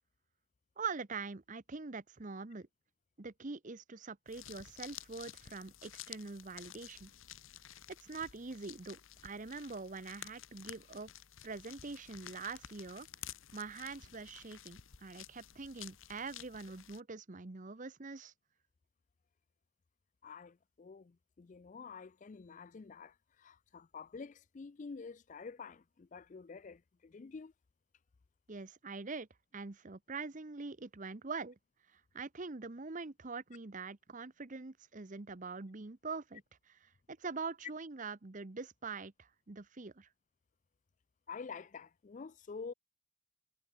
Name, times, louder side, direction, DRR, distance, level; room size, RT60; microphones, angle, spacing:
voice 1, 0.8-2.7 3.2-7.1 8.0-11.1 11.4-13.1 13.5-18.3 28.5-29.3 29.5-31.6 32.1-36.4 36.7-36.8 37.1-40.1, right 4 dB, 35° right, 0.8 m, -44 dB
sound 1, 4.3-17.0, left 11 dB, 65° left, 1.0 m, -52 dB
voice 2, 20.2-27.5 41.3-42.7, left 5 dB, 35° left, 0.4 m, -48 dB
head